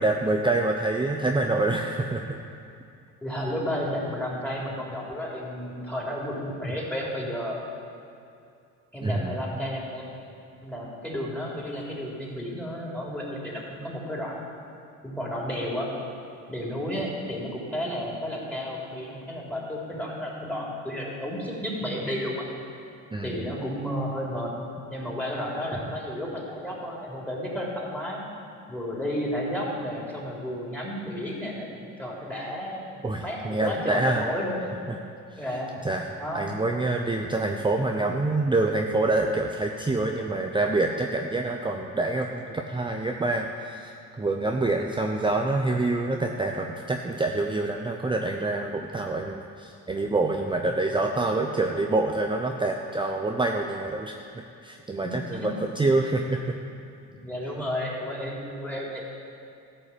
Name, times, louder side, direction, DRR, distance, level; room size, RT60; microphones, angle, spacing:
voice 1, 0.0-2.4 6.6-6.8 9.0-9.4 23.1-23.5 33.0-34.2 35.3-35.4 35.8-54.2 54.6-56.5, right 2 dB, 15° right, 2 dB, 0.7 m, -26 dB
voice 2, 3.2-7.6 8.9-10.1 10.6-14.5 15.0-15.9 16.5-22.5 23.2-24.5 24.9-28.2 28.7-31.7 32.0-34.6 35.3-35.7 36.2-36.5 50.7-50.8 55.0-55.5 55.8-55.9 57.1-59.0, equal, 5° left, -4 dB, 3.5 m, -32 dB
13.5 x 5.6 x 8.5 m, 2.5 s
supercardioid pair, 80°, 36 cm